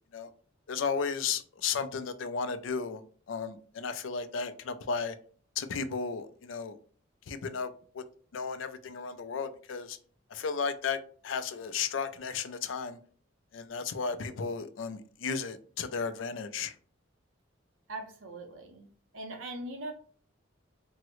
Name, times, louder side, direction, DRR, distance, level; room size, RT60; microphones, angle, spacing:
voice 1, 0.7-5.2 5.6-6.8 7.3-8.0 8.3-10.0 10.3-13.0 13.5-16.7, left 5 dB, 75° left, 0.4 m, -34 dB
voice 2, 17.9-18.9 19.1-19.9, right 2 dB, 90° right, 0.6 m, -40 dB
3.6 x 2.0 x 3.0 m
head